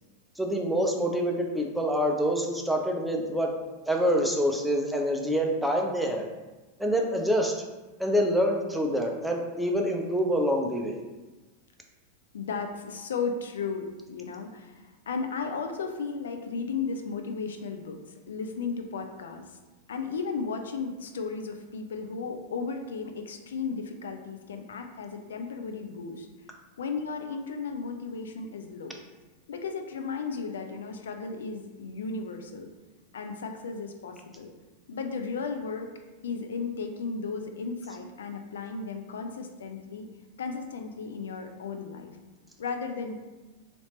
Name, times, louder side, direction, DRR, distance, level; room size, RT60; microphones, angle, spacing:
voice 1, 0.4-3.5 3.8-6.3 6.8-7.5 8.0-11.0, equal, 5° right, 0 dB, 0.5 m, -26 dB
voice 2, 12.3-19.6 19.9-26.3 26.8-29.0 29.5-32.7 33.1-34.5 34.9-35.9 36.2-40.1 40.4-42.2 42.6-43.1, left 5 dB, 65° left, 5 dB, 0.4 m, -35 dB
2.9 x 2.7 x 3.1 m, 1.2 s
figure-of-eight pair, 90°, 0 cm